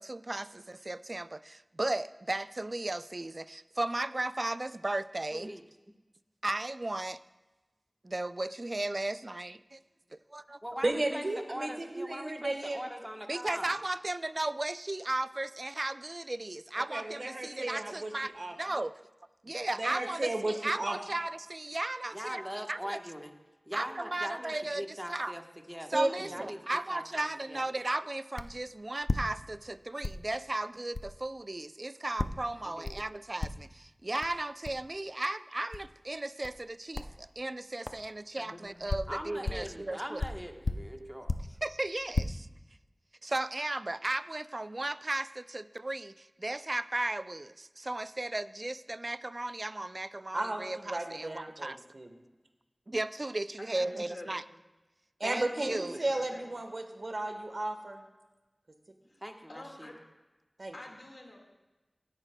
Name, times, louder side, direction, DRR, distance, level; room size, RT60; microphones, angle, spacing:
voice 1, 0.0-5.5 6.4-7.2 8.0-9.8 10.3-10.6 13.3-18.3 18.6-19.0 19.4-22.4 22.7-23.0 23.7-25.4 25.9-40.2 41.0-41.1 41.6-42.5 43.2-51.8 52.9-54.4 55.2-56.0, right 2 dB, 45° right, 14 dB, 0.3 m, -35 dB
voice 2, 5.3-5.6 10.6-13.8 22.1-23.3 23.7-25.4 25.7-26.0 26.3-26.6 26.9-27.6 32.8-33.0 39.1-41.3 59.2-59.9, equal, 10° right, 3 dB, 1.1 m, -41 dB
voice 3, 10.8-12.8 16.9-18.5 19.8-21.0 25.9-26.4 50.3-52.1 55.2-58.0 60.6-60.7, right 2 dB, 65° right, 5 dB, 1.2 m, -34 dB
sound 1, 28.4-28.6 29.0-29.7 30.0-30.3 30.9-31.1 32.2-32.5 32.8-33.1 33.4-33.8 34.2-34.3 34.6-34.8 35.7-35.9 36.4-36.7 36.9-37.2 37.9-38.0 38.6-39.8 40.2-41.6 42.0-42.2, left 3 dB, 85° left, 0.5 m, -34 dB
voice 4, 53.6-54.5 55.6-56.4 59.1-59.2 59.5-60.0 60.7-61.4, left 1 dB, 65° left, 0 dB, 1.8 m, -48 dB
16.5 x 11.0 x 2.2 m, 1.1 s
wide cardioid pair, 50°, 0 cm